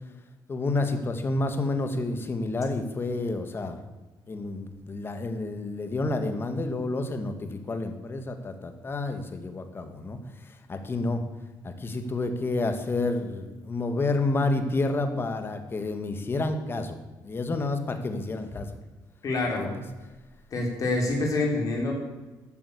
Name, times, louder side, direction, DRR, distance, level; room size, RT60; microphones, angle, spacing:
voice 1, 0.5-3.8 4.3-11.2 11.6-18.7 19.6-19.7, left 2 dB, 30° left, 7 dB, 1.9 m, -29 dB
voice 2, 19.2-19.7 20.5-21.9, left 2 dB, 45° left, 0 dB, 3.9 m, -26 dB
14.0 x 9.1 x 8.4 m, 1.2 s
cardioid pair, 125°, 8 cm